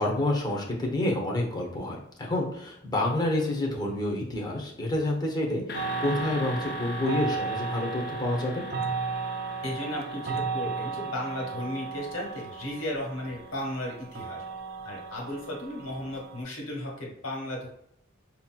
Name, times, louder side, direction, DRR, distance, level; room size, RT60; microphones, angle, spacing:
voice 1, 0.0-8.6, left 1 dB, 20° left, 0 dB, 0.8 m, -28 dB
sound 1, 5.7-13.5, left 5 dB, 50° left, 0.4 m, -42 dB
sound 2, 5.7-16.4, right 5 dB, 50° right, 0.5 m, -35 dB
voice 2, 9.6-14.4 14.8-17.7, left 1 dB, 80° left, -2 dB, 1.5 m, -35 dB
5.2 x 2.8 x 2.2 m, 0.73 s
head